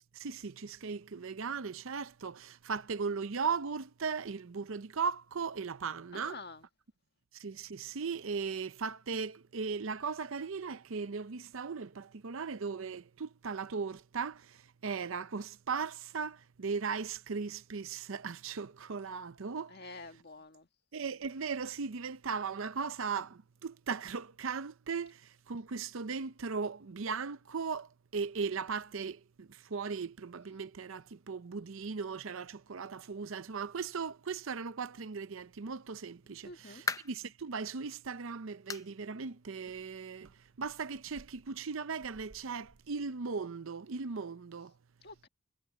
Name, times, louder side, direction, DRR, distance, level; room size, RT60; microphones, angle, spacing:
voice 1, 0.1-6.4 7.3-19.7 20.9-44.7, right 5 dB, 65° right, 0.6 m, -38 dB
voice 2, 6.1-6.6 19.7-20.7 36.4-36.8 45.0-45.3, left 3 dB, 45° left, 1.8 m, -48 dB
sound 1, 36.2-37.3 37.8-37.9 38.7-39.0 39.3-39.4 39.9-40.0 41.1-41.2, left 4 dB, 15° left, 0.6 m, -38 dB
head